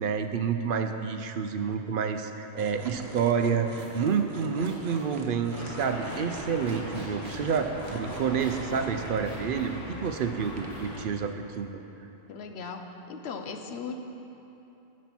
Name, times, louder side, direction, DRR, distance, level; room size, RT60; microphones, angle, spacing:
voice 1, 0.0-3.7 3.9-11.8, right 6 dB, 65° right, 7 dB, 0.7 m, -29 dB
sound 1, 2.6-9.2 9.7-10.1 10.4-11.0 11.5-11.6, right 3 dB, 90° right, 1.1 m, -45 dB
sound 2, 3.7-11.1, equal, 70° left, 3.1 m, -49 dB
sound 3, 5.5-11.1, left 2 dB, 50° left, 1.2 m, -40 dB
voice 2, 12.3-14.0, left 5 dB, 90° left, 5 dB, 1.0 m, -38 dB
9.5 x 7.3 x 6.0 m, 2.9 s
omnidirectional pair, 1.0 m